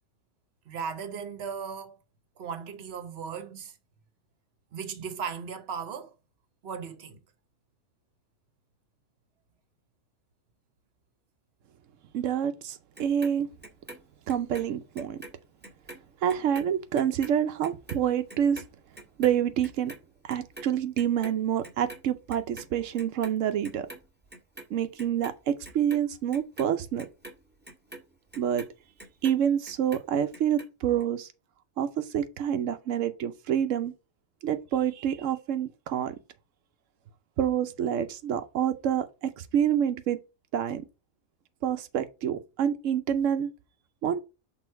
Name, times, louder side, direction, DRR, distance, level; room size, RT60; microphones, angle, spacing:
voice 1, 0.7-2.0 2.4-3.8 4.7-6.1 6.6-7.2, right 6 dB, 60° right, 1.2 m, -37 dB
voice 2, 12.1-13.5 14.3-15.2 16.2-18.6 19.2-19.9 20.2-23.9 24.7-27.1 28.4-28.6 29.2-31.3 31.8-33.9 34.4-36.1 37.4-40.2 40.5-40.8 41.6-43.5 44.0-44.2, right 9 dB, 90° right, 1.0 m, -27 dB
Clock, 13.0-15.4 15.6-22.0 22.3-23.4 23.6-24.7 25.0-29.4 29.7-30.7 31.0-31.1, right 1 dB, 10° right, 1.5 m, -46 dB
6.1 x 3.9 x 4.5 m
omnidirectional pair, 1.3 m